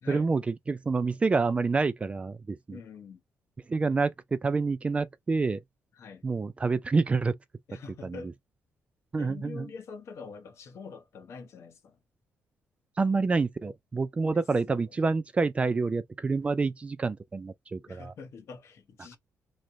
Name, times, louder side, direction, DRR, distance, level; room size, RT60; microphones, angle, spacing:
voice 1, 0.1-2.8 3.7-5.6 6.2-7.3 8.0-8.3 9.1-9.7 13.0-18.1, right 4 dB, 25° right, 0.4 m, -28 dB
voice 2, 2.7-3.2 6.0-6.2 7.7-8.3 9.2-12.0 14.3-14.9 17.9-19.2, left 5 dB, 60° left, 0.9 m, -45 dB
3.1 x 2.2 x 3.8 m
cardioid pair, 130°, 5 cm